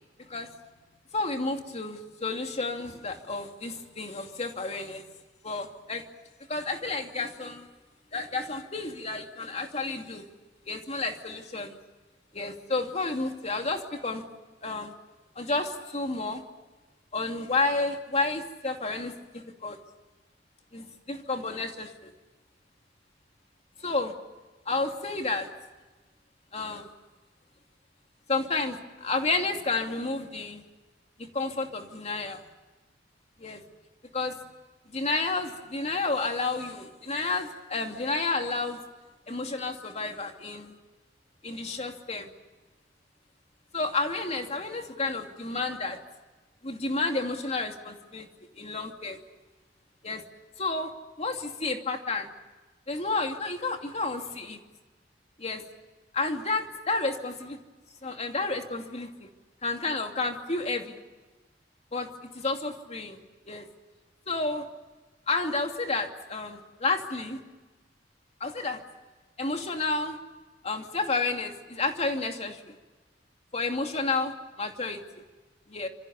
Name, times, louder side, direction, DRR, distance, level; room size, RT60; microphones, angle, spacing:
voice 1, 1.1-5.0 5.4-6.0 6.5-7.7 8.1-10.2 10.7-11.8 12.3-14.2 14.6-14.9 15.4-16.4 17.1-19.8 20.7-22.1 23.8-24.1 24.7-25.5 26.5-26.9 28.3-30.6 31.3-32.4 33.4-33.6 34.1-34.4 34.9-38.8 39.3-40.7 41.4-42.3 43.7-46.0 46.6-48.3 48.6-49.2 50.0-50.2 50.6-50.9 51.2-52.3 52.9-54.6 55.4-55.6 56.1-57.6 58.0-59.3 59.6-61.0 61.9-62.1 62.3-63.2 63.5-63.7 64.3-64.6 65.3-67.4 68.4-68.8 69.4-70.2 70.6-72.8 73.5-75.0 75.7-75.9, left 3 dB, 40° left, 4 dB, 2.6 m, -31 dB
27.5 x 27.0 x 7.1 m, 1.2 s
head